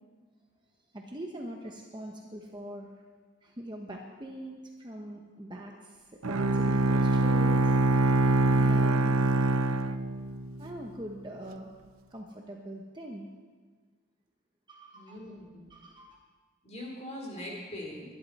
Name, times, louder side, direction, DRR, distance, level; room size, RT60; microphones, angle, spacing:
voice 1, 0.9-3.0 3.4-9.2 10.6-11.8 12.1-13.3 14.7-15.3 15.7-16.2, equal, 20° right, 0 dB, 1.1 m, -43 dB
Bowed string instrument, 6.2-10.7, right 2 dB, 75° right, 0.6 m, -24 dB
voice 2, 14.9-15.7 16.6-18.1, left 1 dB, 30° left, -2 dB, 4.0 m, -41 dB
22.0 x 11.5 x 4.3 m, 1.5 s
head